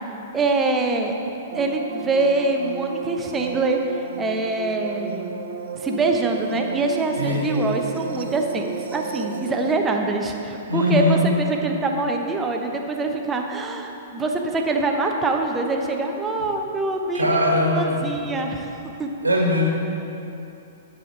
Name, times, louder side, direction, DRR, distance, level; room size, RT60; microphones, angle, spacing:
voice 1, 0.3-1.1 1.5-5.3 5.7-17.2 17.7-18.7 19.0-19.1, right 3 dB, 15° right, 2 dB, 0.8 m, -24 dB
sound 1, 1.5-9.7, right 7 dB, 55° right, 0.6 m, -33 dB
voice 2, 7.2-7.8 10.7-11.2 17.1-18.1 19.2-19.7, left 1 dB, 80° right, -1 dB, 1.5 m, -21 dB
11.0 x 5.1 x 5.6 m, 2.8 s
figure-of-eight pair, 105°, 0 cm